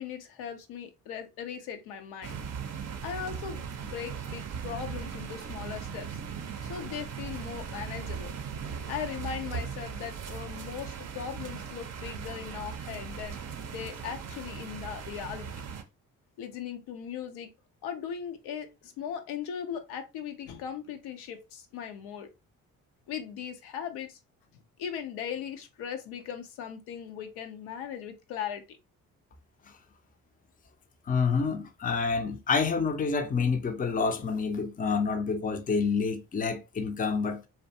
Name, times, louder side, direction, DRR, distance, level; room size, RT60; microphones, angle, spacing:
voice 1, 0.0-2.4 3.0-6.2 6.6-8.3 8.9-13.4 13.7-15.5 16.4-17.5 17.8-22.3 23.1-24.2 24.8-28.6, left 8 dB, 70° left, 0.6 m, -38 dB
sound 1, 2.2-15.8, right 7 dB, 40° right, 0.5 m, -38 dB
voice 2, 31.1-37.4, left 5 dB, 20° left, 0.5 m, -28 dB
2.5 x 2.2 x 2.6 m
hypercardioid pair, 50°, 40 cm